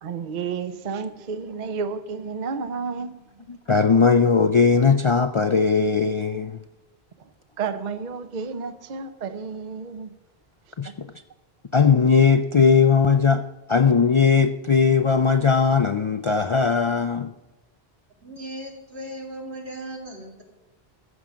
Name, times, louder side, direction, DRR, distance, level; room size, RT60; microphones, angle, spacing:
voice 1, 0.0-3.5 7.2-7.3 7.6-10.1 10.8-10.9, right 5 dB, 50° right, 0.7 m, -31 dB
voice 2, 3.5-6.6 10.8-10.9 11.7-13.4 13.7-17.3, left 5 dB, 50° left, 0.3 m, -19 dB
voice 3, 18.2-20.4, right 1 dB, 90° right, 2.7 m, -37 dB
14.5 x 7.4 x 5.1 m
omnidirectional pair, 1.1 m